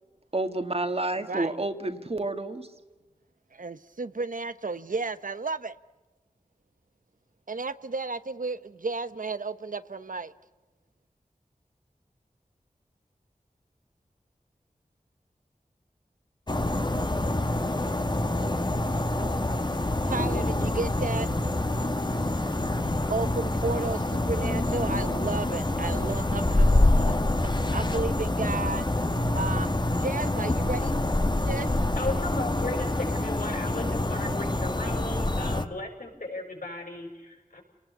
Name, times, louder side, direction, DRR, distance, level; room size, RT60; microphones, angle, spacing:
voice 1, 0.3-2.7, right 2 dB, 45° right, 2.1 m, -29 dB
voice 2, 3.5-5.7 7.5-10.3 20.0-21.3 22.7-22.8 23.1-26.7 27.1-27.2 27.4-28.9 29.3-31.0 31.5-31.7, right 3 dB, 75° right, 1.1 m, -33 dB
sound 1, 16.5-35.6, left 1 dB, 30° left, 1.7 m, -26 dB
voice 3, 31.9-37.6, left 2 dB, 80° left, 6.7 m, -36 dB
30.0 x 19.0 x 8.2 m
wide cardioid pair, 60°, 14 cm